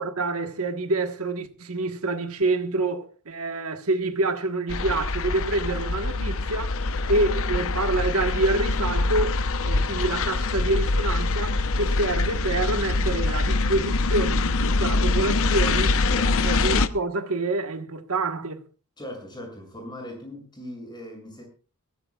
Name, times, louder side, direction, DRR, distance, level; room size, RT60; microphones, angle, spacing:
voice 1, 0.0-6.8 7.1-9.4 9.6-15.9 16.4-18.6, right 2 dB, 70° right, 1.4 m, -27 dB
sound 1, 4.7-16.9, left 3 dB, 65° left, 0.9 m, -24 dB
voice 2, 16.1-16.5 19.0-21.4, left 1 dB, 20° left, 7.3 m, -39 dB
22.5 x 15.5 x 2.4 m
head